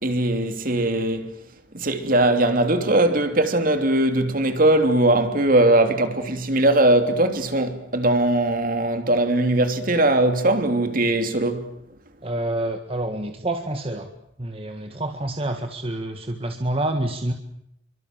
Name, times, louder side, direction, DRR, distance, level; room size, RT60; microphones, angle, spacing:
voice 1, 0.0-1.3 1.7-11.7, right 1 dB, 45° right, 3.0 m, -20 dB
voice 2, 12.2-14.1 14.4-17.3, right 1 dB, 30° right, 1.9 m, -27 dB
28.5 x 24.0 x 7.6 m
head